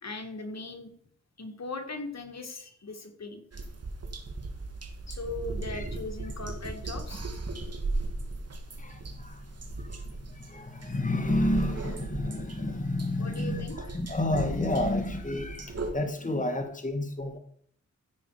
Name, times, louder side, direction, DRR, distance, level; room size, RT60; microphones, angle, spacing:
voice 1, 0.0-0.9 1.4-3.4 5.1-7.3 13.2-13.8, left 3 dB, 55° left, 5 dB, 2.3 m, -39 dB
sound 1, 3.5-15.9, right 2 dB, 50° right, 2.2 m, -37 dB
voice 2, 8.8-17.4, left 1 dB, 25° left, 6 dB, 2.0 m, -31 dB
15.0 x 6.1 x 5.0 m, 0.63 s
cardioid pair, 50°, 31 cm